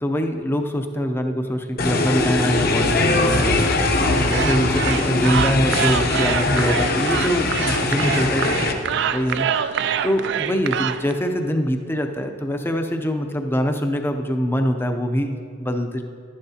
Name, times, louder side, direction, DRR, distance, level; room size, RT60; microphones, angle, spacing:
voice 1, 0.0-4.0 4.3-8.8 9.1-16.0, equal, 10° left, 5 dB, 0.5 m, -24 dB
sound 1, 1.8-8.7, left 2 dB, 50° left, 0.8 m, -21 dB
sound 2, 4.1-11.1, right 8 dB, 60° right, 0.3 m, -26 dB
11.5 x 10.5 x 2.8 m, 2.2 s
head